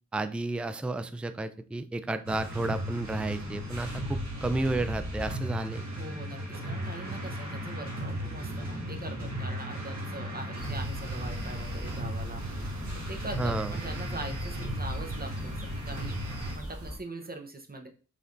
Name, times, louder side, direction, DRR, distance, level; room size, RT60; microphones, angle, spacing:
voice 1, 0.1-5.8 13.4-13.7, right 2 dB, 5° right, 10 dB, 0.3 m, -32 dB
sound 1, 2.2-16.6, equal, 65° right, 1.5 m, -36 dB
voice 2, 6.0-17.9, right 2 dB, 30° right, 4 dB, 0.8 m, -42 dB
sound 2, 10.6-17.0, equal, 50° right, 1.2 m, -40 dB
5.0 x 3.3 x 2.6 m, 0.38 s
cardioid pair, 45°, 30 cm